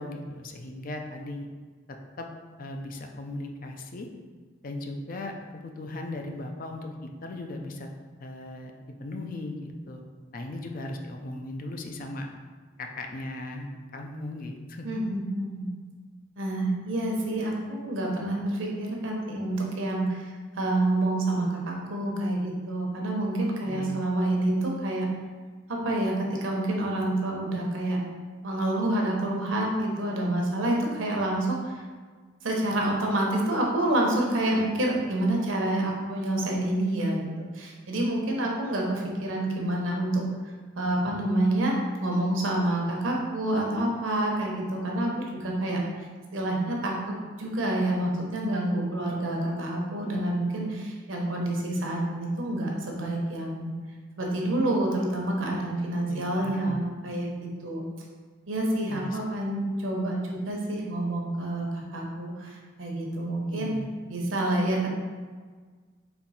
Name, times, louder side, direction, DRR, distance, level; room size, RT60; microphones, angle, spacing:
voice 1, 0.0-1.5 1.9-2.3 2.6-4.1 4.6-7.9 8.2-8.7 9.0-10.0 10.3-12.3 12.8-14.9 23.6-23.9 56.1-56.9 58.9-59.2 63.5-63.9, left 2 dB, 45° left, 3 dB, 0.5 m, -37 dB
voice 2, 14.8-15.7 16.4-25.1 25.7-28.0 28.4-31.8 32.4-40.3 40.8-41.7 42.0-45.8 46.3-53.7 54.1-57.3 57.6-57.8 58.5-63.7 64.1-64.9, right 1 dB, 85° right, -1 dB, 0.9 m, -28 dB
4.3 x 2.8 x 4.1 m, 1.5 s
head